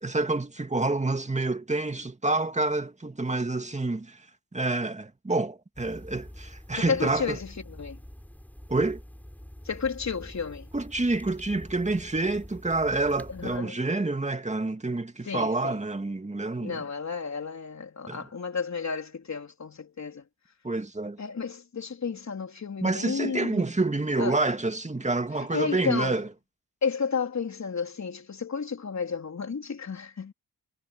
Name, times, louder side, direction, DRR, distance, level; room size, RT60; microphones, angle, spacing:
voice 1, 0.0-4.2 4.5-7.4 8.7-9.0 10.7-16.8 18.1-18.2 20.6-21.2 22.8-26.3, right 2 dB, 20° right, 2.2 m, -28 dB
sound 1, 5.7-13.6, equal, 5° left, 5.8 m, -46 dB
voice 2, 6.7-8.0 9.6-10.7 13.3-13.8 15.3-15.8 16.6-20.3 21.2-23.6 24.2-24.4 25.4-26.2 26.8-30.3, left 5 dB, 55° left, 3.9 m, -32 dB
cardioid pair, 60°, 34 cm